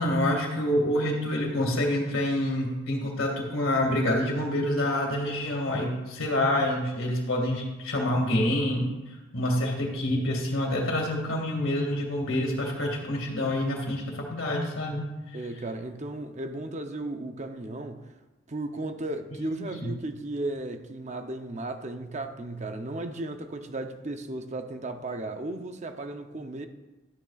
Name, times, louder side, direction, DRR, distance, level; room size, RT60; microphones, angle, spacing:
voice 1, 0.0-8.9 9.3-15.0 19.4-19.9, left 1 dB, 85° left, 2.1 m, -27 dB
voice 2, 15.3-18.1 18.5-26.7, right 2 dB, 35° right, 0.7 m, -35 dB
12.5 x 9.8 x 2.4 m
head